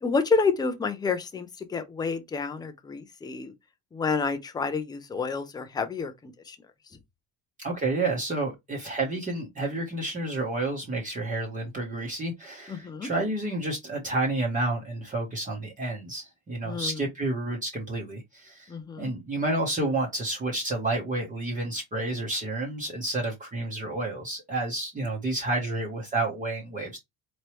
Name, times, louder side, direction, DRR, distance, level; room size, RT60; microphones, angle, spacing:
voice 1, 0.0-3.5 3.9-6.6 12.7-13.1 16.6-17.0 18.7-19.1, left 4 dB, 10° left, 0.5 m, -29 dB
voice 2, 7.6-18.7 19.0-27.0, right 2 dB, 20° right, 1.1 m, -30 dB
4.5 x 3.2 x 3.0 m
cardioid pair, 165°, 39 cm